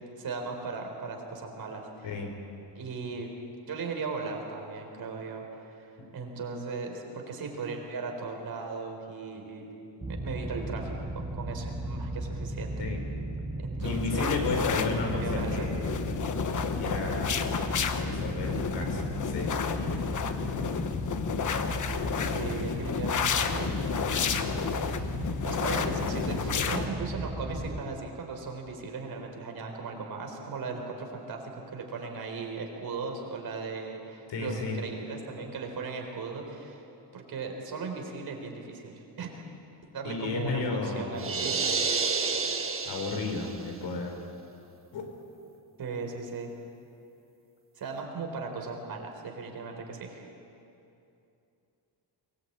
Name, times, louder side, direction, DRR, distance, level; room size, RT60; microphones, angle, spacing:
voice 1, 0.2-2.1 2.7-3.3 3.7-5.9 6.1-9.7 10.1-12.9 13.6-14.5 14.9-15.7 22.2-23.7 25.4-36.8 37.1-39.3 39.9-42.0 45.8-46.5 47.8-50.2, right 4 dB, 55° right, 2 dB, 4.2 m, -37 dB
sound 1, 10.0-27.8, right 1 dB, 10° right, 2.3 m, -36 dB
voice 2, 13.8-15.9 16.8-17.5 18.0-20.0 25.6-25.8 34.3-34.8 40.0-41.4 42.9-44.2 44.9-45.0, left 3 dB, 75° left, 3 dB, 4.6 m, -33 dB
sound 2, 13.8-26.9, left 6 dB, 45° left, 1.2 m, -31 dB
sound 3, 41.2-43.7, right 4 dB, 30° right, 1.5 m, -29 dB
23.5 x 19.5 x 8.9 m, 2.7 s
wide cardioid pair, 170°, 43 cm